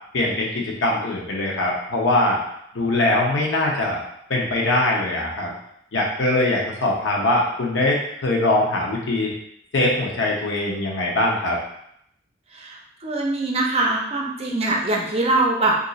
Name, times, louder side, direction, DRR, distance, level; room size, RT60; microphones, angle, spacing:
voice 1, 0.1-2.4 2.7-4.0 4.3-5.5 5.9-9.3 9.7-11.6, left 2 dB, 80° left, -2 dB, 0.7 m, -22 dB
voice 2, 12.5-15.8, right 2 dB, 35° right, -1 dB, 0.5 m, -22 dB
2.6 x 2.4 x 3.9 m, 0.74 s
head